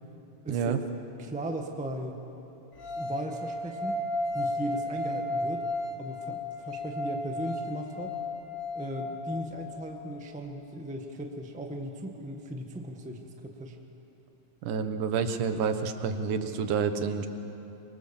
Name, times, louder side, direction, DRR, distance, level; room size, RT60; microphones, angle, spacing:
voice 1, 0.5-0.8 14.6-17.3, right 6 dB, 90° right, 8 dB, 2.7 m, -29 dB
voice 2, 1.2-2.2 2.9-4.0 4.3-5.6 6.0-8.2 8.7-13.8, right 1 dB, 5° right, 3 dB, 0.5 m, -37 dB
sound 1, 2.8-9.9, left 1 dB, 50° left, 2.6 m, -34 dB
25.0 x 23.5 x 7.2 m, 3.0 s
omnidirectional pair, 3.5 m